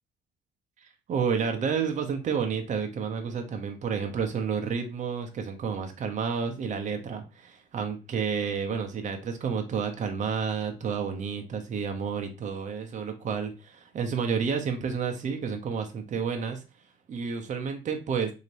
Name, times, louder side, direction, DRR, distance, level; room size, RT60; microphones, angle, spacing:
voice 1, 0.8-16.6 17.1-18.3, right 6 dB, 45° right, 5 dB, 0.9 m, -30 dB
3.2 x 2.9 x 4.0 m, 0.30 s
cardioid pair, 110°, 17 cm